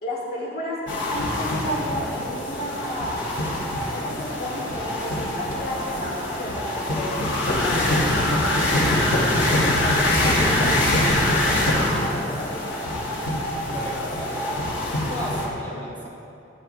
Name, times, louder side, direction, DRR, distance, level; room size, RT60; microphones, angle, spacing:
voice 1, 0.0-0.8 1.1-3.3 3.8-7.2 7.6-12.5 15.0-16.1, left 1 dB, 55° left, -4 dB, 1.9 m, -33 dB
sound 1, 0.9-15.5, left 1 dB, 80° left, 2.4 m, -24 dB
voice 2, 13.7-14.5 15.1-16.1, left 1 dB, 10° left, -7 dB, 2.9 m, -38 dB
22.0 x 10.5 x 2.2 m, 2.7 s
head